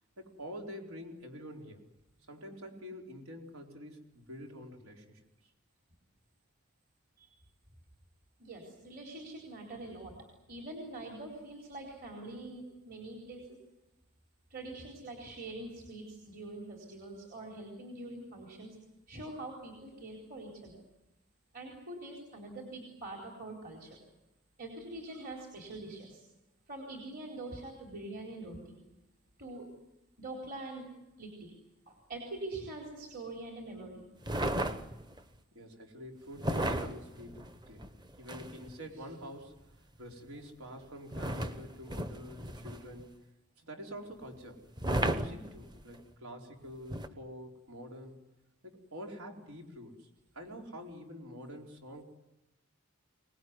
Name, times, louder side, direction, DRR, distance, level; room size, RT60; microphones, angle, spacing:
voice 1, 0.2-1.8 2.3-5.5 35.5-37.9 38.2-43.2 43.6-44.6 44.9-48.2 48.6-50.1 50.3-52.0, equal, 85° right, 2 dB, 4.2 m, -47 dB
voice 2, 8.4-10.1 10.5-13.6 14.5-18.7 19.1-20.8 21.5-24.0 24.6-26.2 26.7-28.6 29.4-29.6 30.2-30.8 31.2-31.5 31.9-34.0, right 2 dB, 45° right, 0 dB, 4.2 m, -44 dB
sound 1, 34.2-35.2 36.4-38.8 41.1-43.0 44.8-46.0 46.9-47.1, right 1 dB, 20° right, 1.0 m, -34 dB
25.0 x 19.0 x 9.7 m, 0.97 s
head